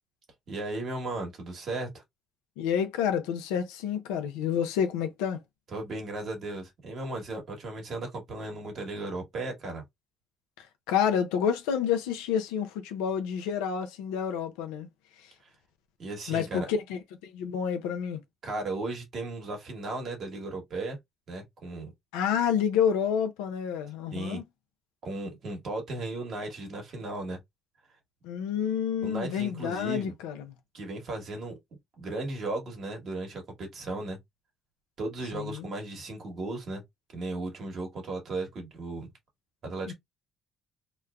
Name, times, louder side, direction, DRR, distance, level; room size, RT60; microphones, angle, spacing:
voice 1, 0.5-2.0 5.7-9.8 16.0-16.7 18.4-21.0 21.3-21.9 24.1-24.4 25.0-27.4 29.0-30.1 30.7-31.6 32.0-34.2 35.0-36.8 37.1-39.1 39.6-39.9, right 2 dB, 60° right, 1.4 m, -36 dB
voice 2, 2.6-5.4 10.6-14.9 15.2-15.3 16.3-18.2 22.1-24.4 28.2-30.5 35.3-35.7 39.9-40.0, left 8 dB, 85° left, 0.5 m, -29 dB
2.9 x 2.2 x 2.3 m
hypercardioid pair, 55°, 0 cm